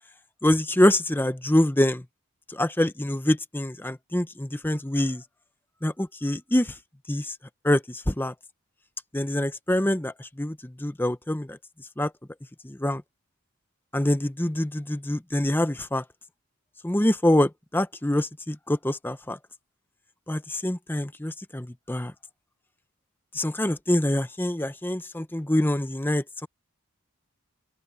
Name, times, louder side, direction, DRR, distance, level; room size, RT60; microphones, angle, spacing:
voice 1, 0.4-2.0 2.5-5.2 5.8-6.7 7.1-7.3 7.6-8.3 9.1-11.6 12.0-12.1 12.6-13.0 13.9-16.0 16.8-19.4 20.3-22.1 23.3-26.5, left 1 dB, 10° left, 0.7 m, -25 dB
open air
head